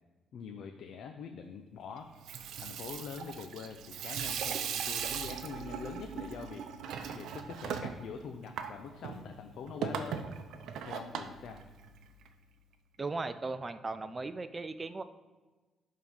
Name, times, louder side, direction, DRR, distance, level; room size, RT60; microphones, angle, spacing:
voice 1, 0.3-2.1 2.6-6.6 7.1-10.2 10.8-11.6, left 6 dB, 70° left, 5 dB, 0.6 m, -44 dB
Water tap faucet / Sink (filling or washing), 2.1-12.3, right 7 dB, 80° right, 0.7 m, -39 dB
voice 2, 13.0-15.0, right 3 dB, 25° right, 11 dB, 0.5 m, -37 dB
11.0 x 3.8 x 5.5 m, 1.3 s
cardioid pair, 90°, 0 cm